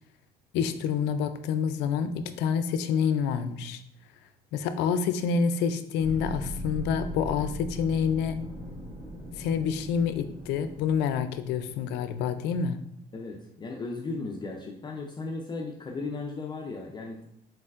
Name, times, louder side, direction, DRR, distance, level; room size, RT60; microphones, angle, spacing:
voice 1, 0.5-3.8 4.5-8.4 9.4-12.8, left 6 dB, 85° left, 10 dB, 0.4 m, -27 dB
sound 1, 6.0-12.5, equal, 30° right, 1.2 m, -40 dB
voice 2, 13.1-17.3, left 3 dB, 25° left, 0 dB, 0.5 m, -36 dB
4.3 x 4.0 x 2.4 m, 0.76 s
cardioid pair, 110°, 17 cm